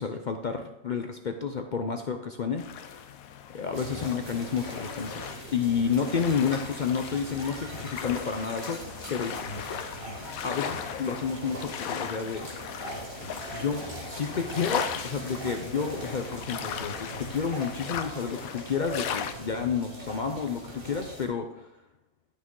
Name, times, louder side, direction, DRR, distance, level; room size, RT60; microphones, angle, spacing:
voice 1, 0.0-3.1 3.5-5.2 5.5-8.8 9.1-9.3 10.4-12.5 13.5-21.7, left 6 dB, 60° left, 6 dB, 0.5 m, -30 dB
sound 1, 2.6-19.3, left 8 dB, 85° left, 1.1 m, -38 dB
sound 2, 3.7-21.2, right 1 dB, 40° right, 2.3 m, -41 dB
11.5 x 6.2 x 3.7 m, 0.89 s
omnidirectional pair, 1.5 m